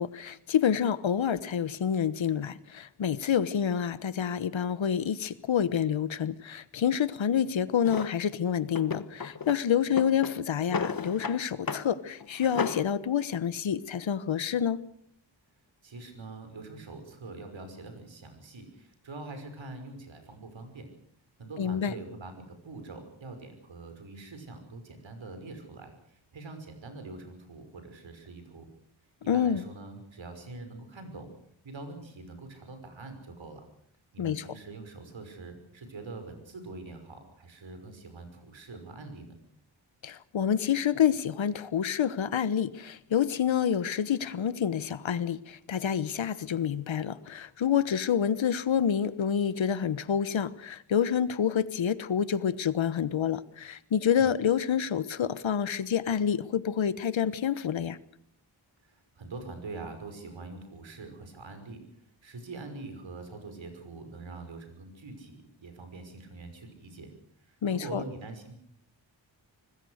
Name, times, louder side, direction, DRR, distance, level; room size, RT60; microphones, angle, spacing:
voice 1, 0.0-14.8 21.6-21.9 29.3-29.6 34.2-34.4 40.0-58.0 67.6-68.0, left 8 dB, 75° left, 16 dB, 1.2 m, -28 dB
Drawer open or close, 7.8-8.1 8.7-9.6 9.9-11.4 11.7-11.9 12.2-12.9, left 5 dB, 45° left, 1.5 m, -33 dB
voice 2, 15.8-20.9 21.4-28.7 29.3-31.3 31.6-33.7 34.1-39.3 54.2-54.4 58.8-61.8 62.2-67.1 67.4-68.5, right 3 dB, 75° right, 7 dB, 5.8 m, -44 dB
25.5 x 20.0 x 6.5 m, 0.67 s
wide cardioid pair, 85°, 46 cm